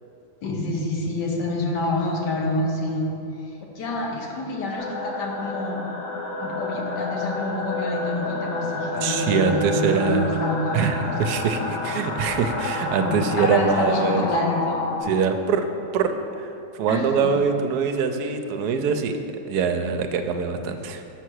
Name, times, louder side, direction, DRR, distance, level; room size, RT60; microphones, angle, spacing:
voice 1, 0.4-3.1 3.6-5.8 6.4-11.7 13.0-14.8 16.9-17.3, left 2 dB, 85° left, 0 dB, 1.6 m, -27 dB
sound 1, 4.8-15.0, left 2 dB, 60° left, 1.3 m, -29 dB
voice 2, 9.0-10.2 10.7-14.2 15.0-15.6 15.9-19.2 19.5-21.0, right 6 dB, 80° right, 7 dB, 1.1 m, -24 dB
6.3 x 5.6 x 6.2 m, 2.9 s
omnidirectional pair, 1.8 m